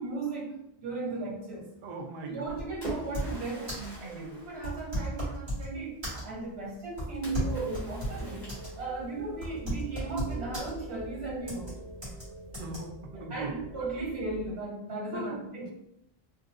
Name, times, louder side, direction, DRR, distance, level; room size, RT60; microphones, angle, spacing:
voice 1, 0.0-1.7 2.2-8.5 8.8-11.7 13.1-15.7, right 3 dB, 80° right, -4 dB, 1.2 m, -36 dB
voice 2, 1.8-2.5 3.8-4.5 12.6-14.1 15.1-15.4, right 2 dB, 60° right, 0 dB, 0.7 m, -40 dB
Splash splatter, 2.2-5.4 7.2-9.2, right 1 dB, 45° left, 1.5 m, -45 dB
sound 1, 2.5-3.4 3.7-3.9 4.6-5.7 6.0-6.5 7.0-8.7 9.0-9.1 9.4-10.7 11.5-11.7 12.0-12.2 12.5-12.8, equal, 25° right, 1.5 m, -34 dB
sound 2, 7.2-14.5, right 1 dB, 65° left, 1.3 m, -45 dB
3.3 x 2.7 x 2.5 m, 0.78 s
omnidirectional pair, 1.0 m